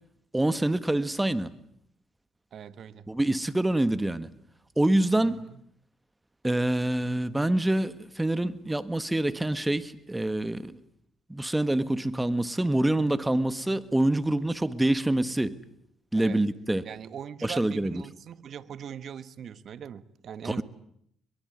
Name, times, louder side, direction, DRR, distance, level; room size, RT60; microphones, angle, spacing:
voice 1, 0.3-1.5 3.1-4.3 4.8-5.4 6.4-10.8 11.3-15.6 16.1-16.8 17.4-18.0 20.4-20.6, right 1 dB, 10° right, 13 dB, 1.6 m, -26 dB
voice 2, 2.5-3.1 5.2-5.6 16.2-16.4 16.8-20.6, right 8 dB, 60° right, 14 dB, 1.4 m, -41 dB
23.0 x 22.5 x 9.5 m, 0.70 s
cardioid pair, 90°, 0 cm